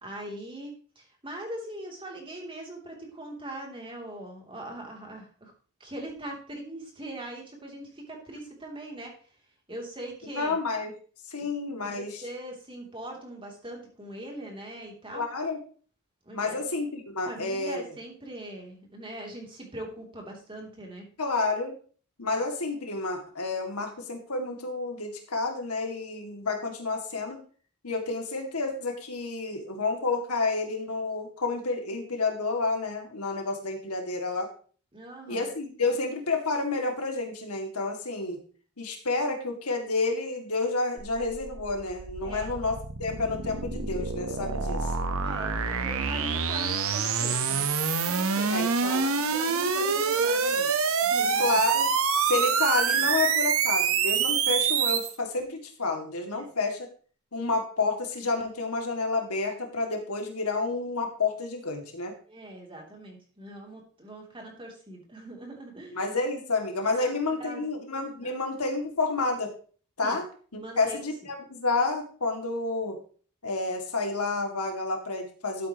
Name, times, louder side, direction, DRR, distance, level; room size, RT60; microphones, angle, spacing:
voice 1, 0.0-5.5 5.8-9.1 9.7-10.6 11.8-15.3 16.2-16.7 17.3-21.0 34.9-35.5 42.2-42.5 45.2-47.7 48.1-50.7 51.0-51.6 56.3-56.5 62.3-66.0 66.9-67.1 67.4-67.6 68.2-68.3 70.0-70.2 70.6-71.1, right 1 dB, 25° right, 0 dB, 3.0 m, -41 dB
voice 2, 10.4-10.9 11.3-12.2 15.1-15.6 16.3-17.9 21.2-21.7 22.2-27.4 27.8-34.5 35.3-38.4 38.8-44.9 48.5-49.1 51.4-51.9 52.2-56.9 57.3-62.1 65.9-69.5 70.0-70.2 70.5-73.0 73.4-75.7, left 3 dB, 80° left, 3 dB, 2.3 m, -30 dB
sound 1, 41.0-55.1, right 6 dB, 65° right, 1.1 m, -26 dB
12.5 x 8.5 x 3.0 m, 0.42 s
head